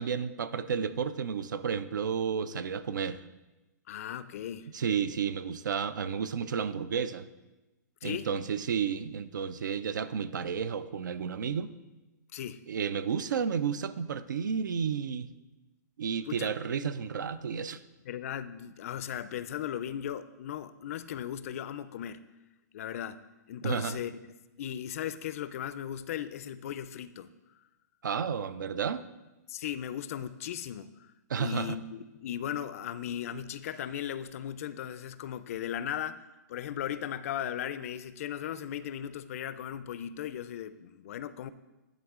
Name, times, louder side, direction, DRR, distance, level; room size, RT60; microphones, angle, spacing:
voice 1, 0.0-3.2 4.7-7.3 8.0-11.7 12.7-15.3 16.0-17.8 23.6-24.0 28.0-29.1 31.3-31.8, right 7 dB, 85° right, 15 dB, 0.4 m, -32 dB
voice 2, 3.9-4.7 8.0-8.3 12.3-12.6 16.2-16.6 18.1-22.2 22.7-23.2 23.5-24.2 24.6-27.3 29.5-30.9 31.4-41.5, left 10 dB, 50° left, 14 dB, 0.4 m, -37 dB
10.5 x 4.0 x 3.6 m, 1.1 s
hypercardioid pair, 150°, 10 cm